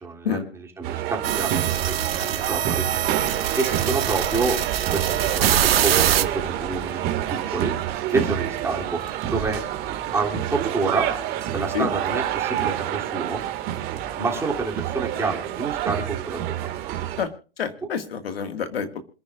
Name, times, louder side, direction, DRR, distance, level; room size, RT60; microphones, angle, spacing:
voice 1, 0.0-2.9 3.5-4.6 4.9-7.8 8.1-9.0 9.3-9.6 10.1-11.1 11.5-13.4 14.2-16.7, right 3 dB, 10° right, 0 dB, 3.1 m, -28 dB
sound 1, 0.8-17.3, right 11 dB, 35° right, 2.2 m, -28 dB
sound 2, 1.2-6.2, right 10 dB, 75° right, 1.5 m, -24 dB
voice 2, 17.6-19.0, left 7 dB, 80° left, 7 dB, 2.2 m, -27 dB
27.0 x 9.9 x 2.6 m, 0.36 s
hypercardioid pair, 135°, 30 cm